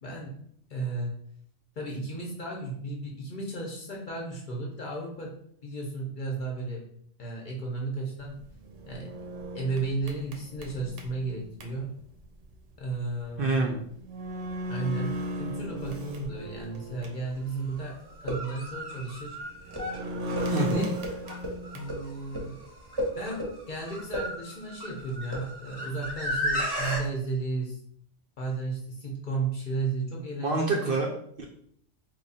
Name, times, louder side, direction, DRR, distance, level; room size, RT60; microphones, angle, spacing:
voice 1, 0.0-0.4 0.7-1.1 1.8-5.3 5.6-6.8 7.2-8.4 8.9-9.1 9.5-11.9 12.8-13.7 14.7-17.9 18.2-19.4 20.5-21.0 21.7-22.6 23.1-27.8 28.4-31.0, right 3 dB, 50° left, -1 dB, 0.8 m, -34 dB
sound 1, 8.4-11.7 13.5-13.6 14.0-17.3 17.7-17.8 19.5-22.0, equal, 80° right, 1.0 m, -36 dB
voice 2, 13.4-13.8 20.5-20.9 30.4-31.4, right 3 dB, 60° right, 0 dB, 0.6 m, -27 dB
sound 2, 17.0-17.1 18.1-27.0, equal, 25° right, 0.7 m, -34 dB
3.1 x 2.3 x 4.0 m, 0.67 s
omnidirectional pair, 1.2 m